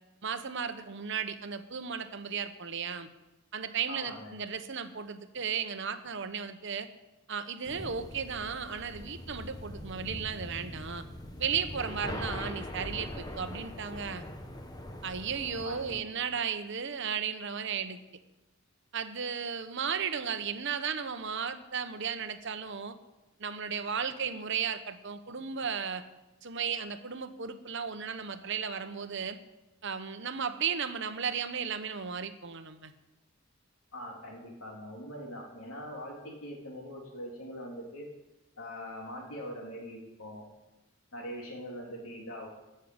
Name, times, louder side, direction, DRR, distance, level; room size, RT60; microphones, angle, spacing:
voice 1, 0.2-3.1 3.5-6.9 7.3-11.0 11.4-14.2 15.0-18.0 18.9-23.0 23.4-26.0 26.4-29.4 29.8-32.9, right 6 dB, 60° right, 10 dB, 1.0 m, -35 dB
voice 2, 3.9-4.4 15.6-16.0 16.3-16.4 33.9-38.1 38.6-40.5 41.1-42.5, equal, 80° left, 0 dB, 3.4 m, -42 dB
sound 1, 7.6-16.0, left 1 dB, 20° left, 1.2 m, -42 dB
14.5 x 6.6 x 8.8 m, 1.0 s
head